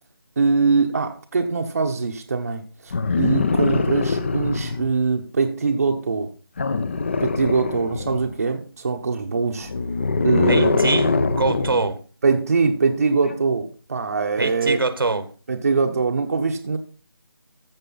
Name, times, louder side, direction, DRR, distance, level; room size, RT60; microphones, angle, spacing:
voice 1, 0.4-6.3 7.2-9.7 10.2-10.9 12.2-14.8 15.5-16.8, right 4 dB, 40° right, 1.0 m, -22 dB
sound 1, 2.9-4.9 6.6-8.3 9.6-11.9 13.2-13.3, left 4 dB, 30° left, 0.7 m, -23 dB
voice 2, 10.5-12.0 14.4-15.3, right 3 dB, 70° right, 1.4 m, -24 dB
14.5 x 6.6 x 4.0 m
figure-of-eight pair, 170°, 13 cm